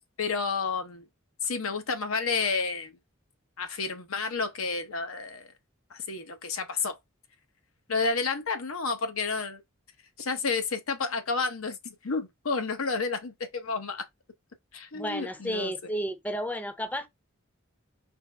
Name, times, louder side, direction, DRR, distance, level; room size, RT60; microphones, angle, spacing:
voice 1, 0.2-1.0 1.4-3.0 3.6-5.5 5.9-7.0 7.9-9.6 10.2-14.1 14.7-15.7, left 4 dB, 90° left, 0.9 m, -30 dB
voice 2, 14.9-17.1, equal, 10° left, 0.5 m, -32 dB
4.5 x 3.2 x 3.3 m
head